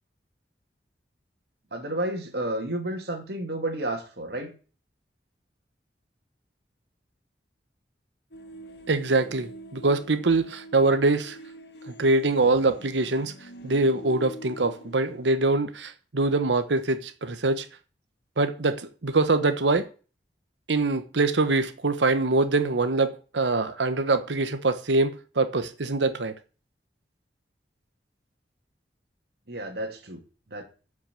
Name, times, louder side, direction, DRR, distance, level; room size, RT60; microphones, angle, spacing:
voice 1, 1.7-4.5 29.5-30.2 30.5-30.6, right 1 dB, 65° right, 2.4 m, -31 dB
sound 1, 8.3-15.3, right 1 dB, 65° left, 1.8 m, -45 dB
voice 2, 8.9-11.4 11.9-13.3 13.6-17.7 18.4-19.9 20.7-26.3, right 3 dB, 85° right, 1.0 m, -24 dB
10.0 x 6.0 x 7.6 m
head